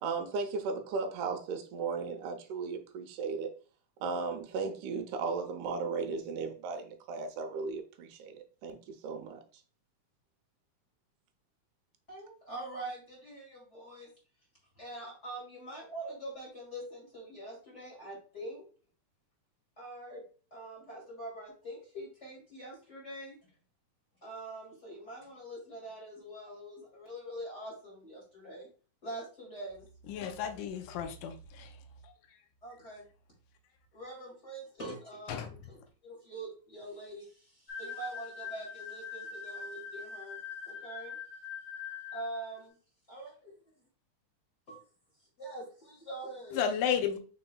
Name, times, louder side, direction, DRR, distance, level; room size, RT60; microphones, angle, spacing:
voice 1, 0.0-3.5 4.0-9.4, right 4 dB, 80° right, 2.1 m, -36 dB
voice 2, 12.1-14.1 14.8-18.6 19.8-20.2 20.5-23.4 24.2-28.7 29.0-29.8 32.6-33.0 33.9-41.2 42.1-42.8 43.1-43.5 44.7-44.8 45.4-46.6, right 1 dB, 25° left, 2.2 m, -44 dB
voice 3, 30.1-31.7 35.3-35.5 46.5-47.2, left 8 dB, 85° left, 2.3 m, -32 dB
sound 1, 37.7-42.6, left 6 dB, 60° left, 2.1 m, -43 dB
5.5 x 4.2 x 2.2 m
omnidirectional pair, 3.7 m